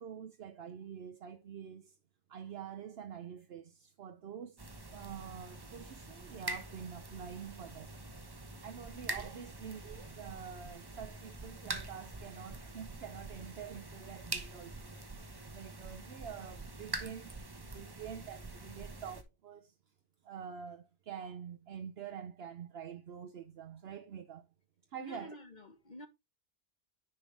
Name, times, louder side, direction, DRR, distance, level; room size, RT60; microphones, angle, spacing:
voice 1, 0.0-2.0 2.3-15.0 15.5-19.7 20.2-24.5 24.9-25.4, right 8 dB, 70° right, 1.0 m, -47 dB
sound 1, 4.6-19.2, right 2 dB, 25° right, 1.0 m, -45 dB
voice 2, 25.0-26.1, left 1 dB, 45° left, 1.3 m, -49 dB
9.8 x 5.8 x 3.2 m
omnidirectional pair, 1.1 m